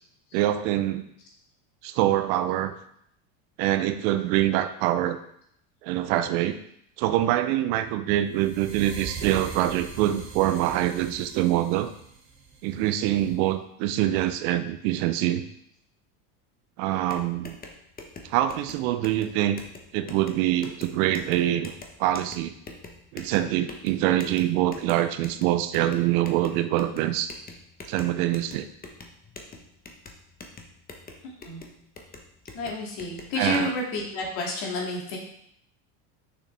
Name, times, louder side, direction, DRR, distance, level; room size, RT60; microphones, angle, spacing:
voice 1, 0.3-1.1 1.8-2.7 3.6-5.2 5.8-6.6 7.0-11.9 12.6-15.4 16.8-17.6 18.3-19.6 19.9-21.7 22.0-22.5 23.1-27.3 27.9-28.7 33.4-33.7, right 13 dB, 65° right, 10 dB, 0.8 m, -25 dB
sound 1, 8.3-13.4, right 5 dB, 45° right, 2.2 m, -41 dB
sound 2, 16.9-33.6, left 3 dB, 20° left, 1.0 m, -45 dB
voice 2, 31.2-31.6 32.5-35.2, left 2 dB, 60° left, -1 dB, 2.6 m, -30 dB
6.5 x 6.2 x 3.5 m, 0.70 s
supercardioid pair, 100°, 47 cm